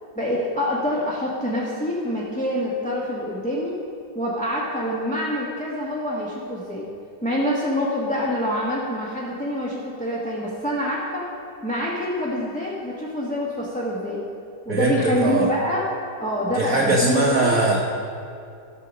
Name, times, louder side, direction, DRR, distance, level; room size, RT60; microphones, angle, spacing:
voice 1, 0.1-3.7 4.1-6.9 7.2-11.3 11.6-14.2 14.6-15.8 16.2-17.6, left 1 dB, 5° left, -6 dB, 1.0 m, -26 dB
voice 2, 14.7-15.5 16.5-17.8, right 2 dB, 55° right, -2 dB, 1.2 m, -20 dB
13.0 x 5.7 x 6.4 m, 2.5 s
omnidirectional pair, 2.0 m